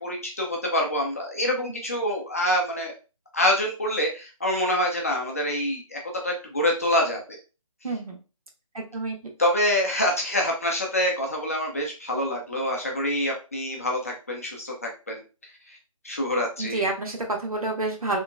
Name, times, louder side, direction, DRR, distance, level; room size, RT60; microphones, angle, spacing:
voice 1, 0.0-2.9 3.3-7.4 9.4-15.2 16.0-16.8, left 1 dB, 25° left, 0 dB, 0.4 m, -26 dB
voice 2, 7.8-8.2 8.7-9.2 16.6-18.2, right 2 dB, 85° right, 1 dB, 1.1 m, -28 dB
2.9 x 2.4 x 2.2 m, 0.31 s
figure-of-eight pair, 165°, 18 cm